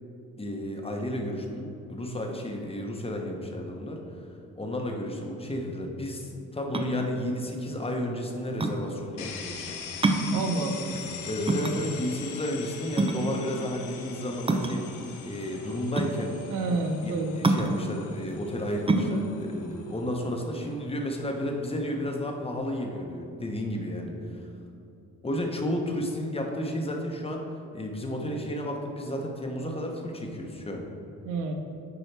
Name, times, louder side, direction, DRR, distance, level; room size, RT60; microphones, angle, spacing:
voice 1, 0.4-4.0 4.6-9.8 10.9-14.8 15.2-16.3 17.0-24.2 25.2-27.4 27.7-30.8, left 1 dB, 20° left, 2 dB, 1.0 m, -32 dB
sound 1, 6.6-20.9, right 2 dB, 20° right, 0.5 m, -29 dB
sound 2, 9.2-22.9, left 6 dB, 80° left, 0.8 m, -43 dB
voice 2, 10.3-10.9 11.5-12.0 16.5-17.4 31.3-31.5, right 3 dB, 90° right, 5 dB, 0.7 m, -29 dB
8.5 x 4.6 x 3.4 m, 2.8 s
cardioid pair, 90°, 30 cm